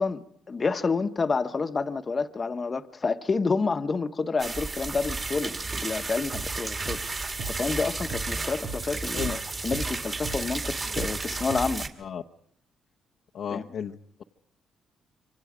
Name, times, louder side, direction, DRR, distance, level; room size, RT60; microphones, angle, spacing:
voice 1, 0.0-7.0 7.5-11.9 13.5-13.6, left 4 dB, 35° left, 1.1 m, -29 dB
sound 1, 4.4-11.9, right 3 dB, 35° right, 2.4 m, -33 dB
sound 2, 6.3-6.5 6.9-9.4 9.7-11.9, right 5 dB, 75° right, 2.0 m, -37 dB
voice 2, 13.3-14.2, left 8 dB, 65° left, 0.9 m, -34 dB
27.0 x 24.5 x 5.0 m
cardioid pair, 90°, 0 cm